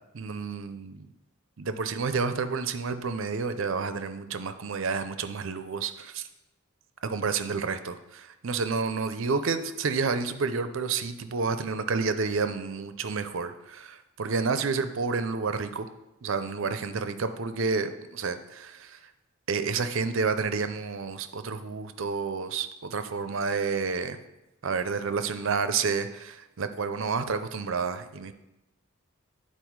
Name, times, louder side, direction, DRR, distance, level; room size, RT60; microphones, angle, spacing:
voice 1, 0.1-1.1 1.6-6.3 7.0-15.9 16.2-19.0 19.5-24.2 24.6-28.3, right 4 dB, 60° right, 10 dB, 0.5 m, -30 dB
9.0 x 4.3 x 4.6 m, 0.94 s
head